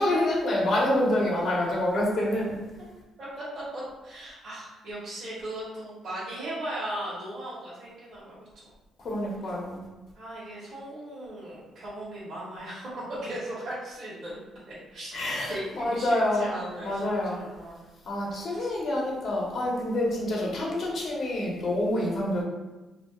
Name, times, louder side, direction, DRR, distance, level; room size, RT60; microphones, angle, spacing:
voice 1, 0.0-2.6 9.0-9.8 15.1-16.5 16.8-17.4 18.0-22.4, left 1 dB, 55° left, -3 dB, 0.8 m, -27 dB
voice 2, 3.7-8.7 10.1-12.9 13.2-14.4 14.9-15.1 15.5-17.8 18.5-18.7, right 1 dB, 55° right, -9 dB, 1.0 m, -38 dB
2.4 x 2.2 x 3.5 m, 1.1 s
cardioid pair, 90°, 0 cm